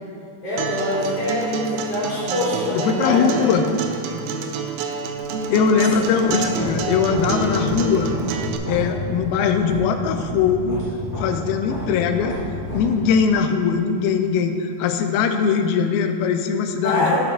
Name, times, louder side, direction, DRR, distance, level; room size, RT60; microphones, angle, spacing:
voice 1, 0.4-3.5 5.7-5.8 16.8-17.2, left 1 dB, 50° left, -10 dB, 2.1 m, -24 dB
Acoustic guitar, 0.6-8.6, right 5 dB, 80° right, 2.3 m, -27 dB
voice 2, 2.7-3.7 5.5-8.1 8.7-10.8 11.2-12.4 12.7-17.2, left 6 dB, 90° left, 6 dB, 2.4 m, -21 dB
sound 1, 5.3-13.4, equal, 15° left, 0.6 m, -31 dB
11.5 x 4.6 x 3.7 m, 2.3 s
omnidirectional pair, 4.3 m